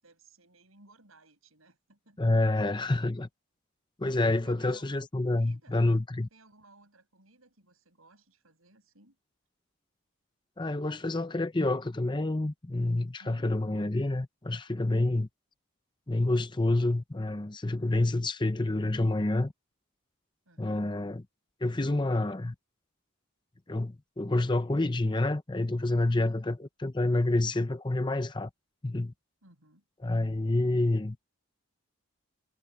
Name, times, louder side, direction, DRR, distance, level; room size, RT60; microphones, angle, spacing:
voice 1, 0.0-2.6 4.3-4.8 5.2-5.8 6.3-9.2 13.2-13.8 20.4-20.8 26.2-26.5 29.4-29.8, right 2 dB, 75° right, 6.6 m, -59 dB
voice 2, 2.2-3.3 4.0-6.3 10.6-15.3 16.1-19.5 20.6-21.2 21.6-22.5 23.7-28.5 28.8-29.1 30.0-31.2, left 2 dB, 20° left, 0.7 m, -28 dB
head